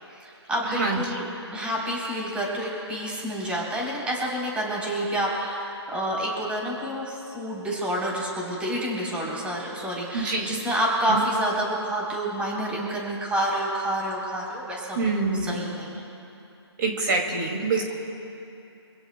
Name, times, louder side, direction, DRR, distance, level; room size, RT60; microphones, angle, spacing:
voice 1, 0.2-15.0 15.4-16.0, right 1 dB, 10° right, -3 dB, 3.7 m, -28 dB
voice 2, 0.7-1.0 10.1-10.6 11.1-11.2 15.0-15.6 16.8-17.9, right 3 dB, 45° right, 1 dB, 2.4 m, -26 dB
27.0 x 17.0 x 2.2 m, 2.7 s
figure-of-eight pair, 145°, 14 cm